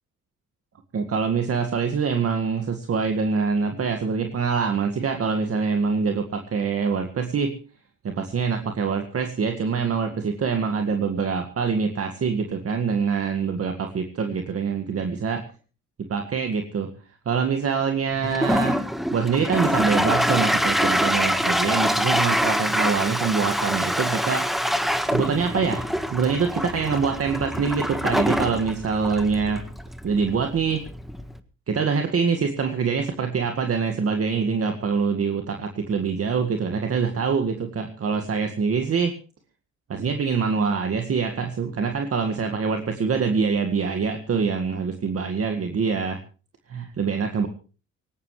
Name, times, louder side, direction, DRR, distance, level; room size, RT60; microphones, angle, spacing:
voice 1, 0.9-7.6 8.0-15.4 16.1-16.9 17.3-18.8 19.1-24.5 25.1-25.8 26.1-29.6 30.0-30.8 31.7-39.1 39.9-46.2 46.7-47.5, right 5 dB, 50° right, 5 dB, 2.0 m, -25 dB
Toilet flush, 18.2-31.4, equal, ahead, 1.5 m, -25 dB
19.0 x 17.5 x 3.3 m, 0.35 s
cardioid pair, 90°, 30 cm